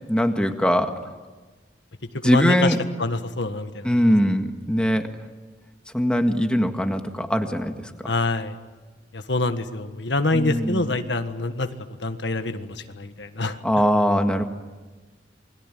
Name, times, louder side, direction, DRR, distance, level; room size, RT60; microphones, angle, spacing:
voice 1, 0.1-1.0 2.2-2.8 3.8-5.0 5.9-7.7 10.3-10.9 13.6-14.4, equal, 5° left, 5 dB, 1.7 m, -21 dB
voice 2, 2.2-2.7 3.0-3.9 8.0-8.5 9.1-11.7 12.0-13.6, left 2 dB, 75° left, 8 dB, 1.6 m, -25 dB
29.0 x 22.0 x 9.2 m, 1.3 s
head